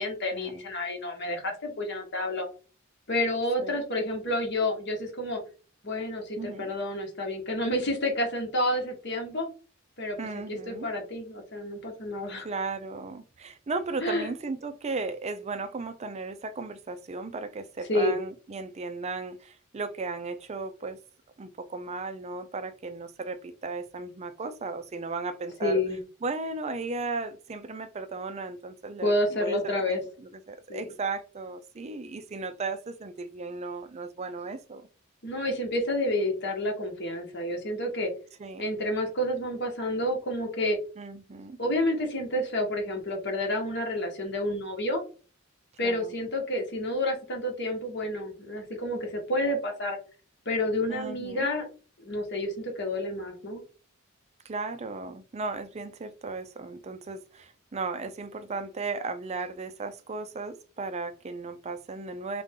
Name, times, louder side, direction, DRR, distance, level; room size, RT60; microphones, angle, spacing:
voice 1, 0.0-2.5 3.1-5.4 5.8-9.5 10.0-12.5 14.0-14.3 17.9-18.2 25.6-26.0 29.0-30.0 30.7-30.9 35.2-38.1 38.6-40.8 41.6-45.0 45.8-50.0 50.4-51.7 52.0-53.6, left 1 dB, 55° left, 1.5 m, -29 dB
voice 2, 6.4-6.7 10.2-10.9 12.4-21.0 21.4-25.8 26.2-34.9 38.4-38.6 41.0-41.6 45.8-46.1 50.9-51.5 54.4-62.4, right 3 dB, 30° right, 0.4 m, -36 dB
3.6 x 3.4 x 3.7 m
head